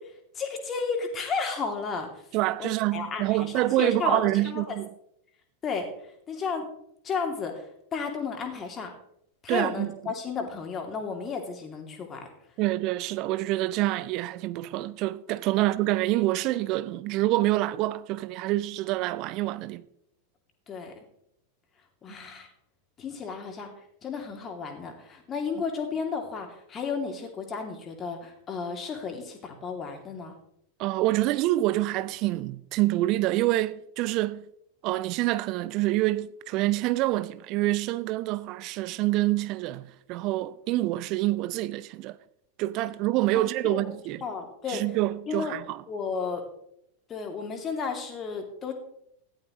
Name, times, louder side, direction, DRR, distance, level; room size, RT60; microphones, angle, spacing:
voice 1, 0.3-2.1 2.6-4.8 5.6-5.9 6.3-6.7 7.0-7.6 7.9-8.9 9.4-12.3 15.6-15.7 20.7-20.9 22.0-22.5 23.0-23.7 24.0-30.3 43.3-44.0 44.2-44.8 45.3-45.6 45.9-46.4 47.1-48.7, left 5 dB, 25° left, 2.7 m, -33 dB
voice 2, 2.3-4.9 9.5-10.1 12.6-19.8 30.8-34.5 34.8-42.2 42.6-44.2 44.7-45.8, right 16 dB, 40° right, 0.7 m, -27 dB
15.5 x 12.0 x 3.1 m
figure-of-eight pair, 90°, 0 cm